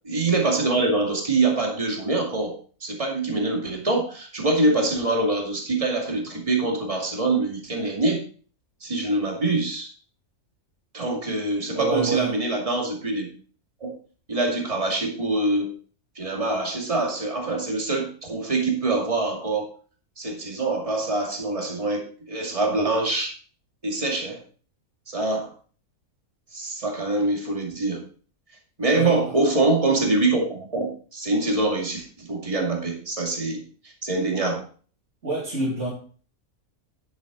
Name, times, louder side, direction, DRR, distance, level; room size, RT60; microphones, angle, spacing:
voice 1, 0.0-2.5 2.8-8.2 8.8-9.9 10.9-13.3 13.8-13.9 14.3-15.7 16.2-19.7 20.2-23.3 23.8-24.4 25.1-25.5 26.5-28.0 28.8-34.6, right 2 dB, 25° right, 0 dB, 2.4 m, -24 dB
voice 2, 11.7-12.3 28.9-29.2 35.2-35.9, right 3 dB, 55° right, -4 dB, 3.0 m, -27 dB
11.0 x 8.0 x 3.9 m, 0.41 s
omnidirectional pair, 1.5 m